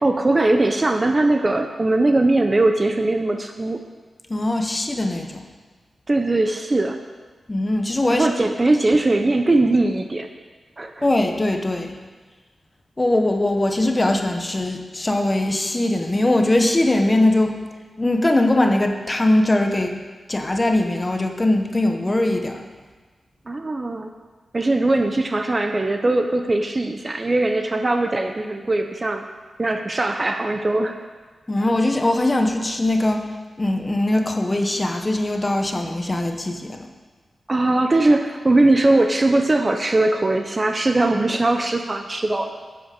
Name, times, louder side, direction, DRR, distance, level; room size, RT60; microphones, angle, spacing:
voice 1, 0.0-3.8 6.1-7.0 8.1-10.3 10.8-11.1 23.5-24.1 24.5-29.3 29.6-31.0 37.5-42.5, right 2 dB, 25° right, 6 dB, 0.6 m, -20 dB
voice 2, 4.3-5.4 7.5-8.3 11.0-12.0 13.0-17.6 18.0-19.9 20.3-22.6 31.5-33.3 33.6-36.8, left 1 dB, 20° left, 4 dB, 0.9 m, -21 dB
10.0 x 7.9 x 6.7 m, 1.4 s
wide cardioid pair, 180°, 0 cm